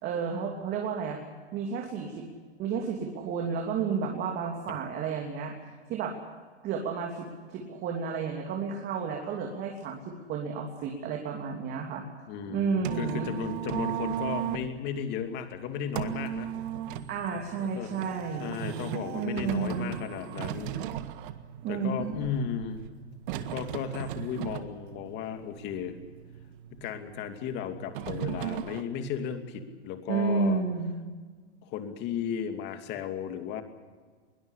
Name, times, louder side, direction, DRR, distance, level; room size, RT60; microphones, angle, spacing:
voice 1, 0.0-1.2 1.5-2.3 2.6-5.5 5.9-6.2 6.6-12.0 12.5-13.3 17.1-18.5 19.1-19.9 21.6-22.3 30.1-30.9, right 5 dB, 30° right, 1 dB, 3.1 m, -31 dB
voice 2, 12.3-16.5 17.6-17.9 18.4-20.8 21.7-22.8 23.5-26.0 26.8-30.6 31.6-33.6, left 8 dB, 30° left, 7 dB, 2.6 m, -35 dB
sound 1, 12.4-28.8, right 11 dB, 50° right, 1.8 m, -37 dB
22.0 x 20.0 x 8.4 m, 1.5 s
hypercardioid pair, 145°, 34 cm